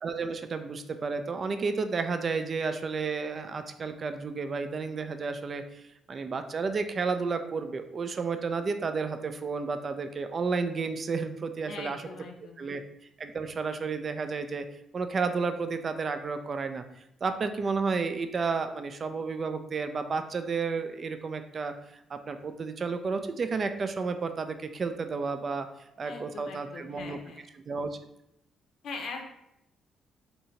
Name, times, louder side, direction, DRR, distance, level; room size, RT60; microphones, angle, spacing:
voice 1, 0.0-5.8 6.1-12.0 12.6-12.8 13.2-14.6 14.9-21.7 22.1-25.7 26.0-27.2 27.5-28.0, right 4 dB, 45° right, 8 dB, 0.3 m, -32 dB
voice 2, 11.6-12.6 26.0-27.4 28.8-29.3, left 3 dB, 70° left, 2 dB, 0.6 m, -41 dB
2.8 x 2.6 x 4.3 m, 0.82 s
cardioid pair, 90°, 0 cm